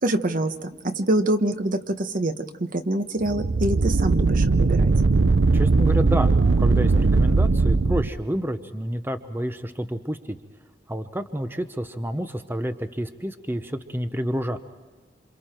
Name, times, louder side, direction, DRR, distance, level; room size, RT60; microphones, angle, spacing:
voice 1, 0.0-4.9, right 1 dB, 50° right, 8 dB, 1.3 m, -25 dB
sound 1, 3.2-8.1, right 3 dB, 85° right, 0.6 m, -19 dB
voice 2, 5.5-10.4 10.9-14.6, equal, 10° right, 8 dB, 0.9 m, -29 dB
28.0 x 28.0 x 4.5 m, 1.3 s
head